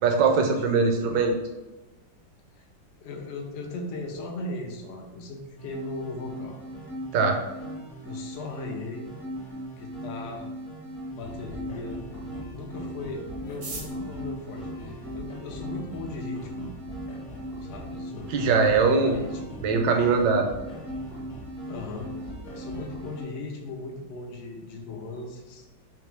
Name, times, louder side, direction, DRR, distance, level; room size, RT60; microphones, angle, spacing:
voice 1, 0.0-1.4 7.1-7.4 18.3-19.2 19.6-20.5, right 4 dB, 75° right, 4 dB, 1.2 m, -21 dB
voice 2, 0.7-1.1 2.6-2.7 3.0-6.6 8.0-9.1 9.7-10.5 11.1-12.0 12.5-16.7 17.6-18.3 19.0-19.6 21.7-22.1 22.5-25.7, left 3 dB, 85° left, 1 dB, 0.6 m, -38 dB
sound 1, 5.6-23.2, equal, 35° left, 0.3 m, -39 dB
sound 2, 11.2-23.0, left 1 dB, 60° left, 0.9 m, -43 dB
sound 3, 13.4-15.7 16.5-16.6 16.8-16.9 17.2-17.6 18.0-18.1 18.2-18.7 19.0-19.2 19.5-19.8, right 3 dB, 60° right, 0.6 m, -43 dB
3.5 x 2.9 x 3.3 m, 1.1 s
omnidirectional pair, 2.1 m